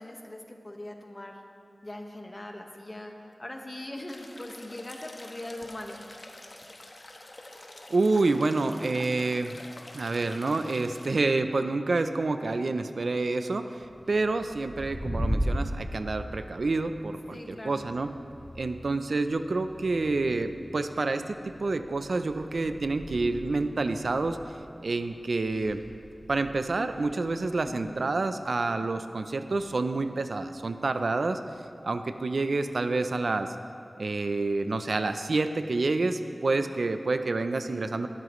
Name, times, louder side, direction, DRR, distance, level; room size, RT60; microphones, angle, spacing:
voice 1, 0.0-1.4 1.8-3.1 3.4-6.0 17.3-17.9 27.6-28.0 37.6-38.0, left 1 dB, 35° left, 2 dB, 1.4 m, -41 dB
sound 1, 4.1-11.1, left 1 dB, 55° left, 1.3 m, -47 dB
voice 2, 7.9-9.6 9.9-18.1 18.6-21.4 21.6-24.4 24.8-25.8 26.3-31.4 31.8-33.5 34.0-38.1, right 3 dB, 80° right, 9 dB, 0.5 m, -28 dB
sound 2, 13.8-32.3, equal, 5° right, 2.2 m, -40 dB
19.5 x 13.0 x 3.2 m, 2.5 s
wide cardioid pair, 65°, 0 cm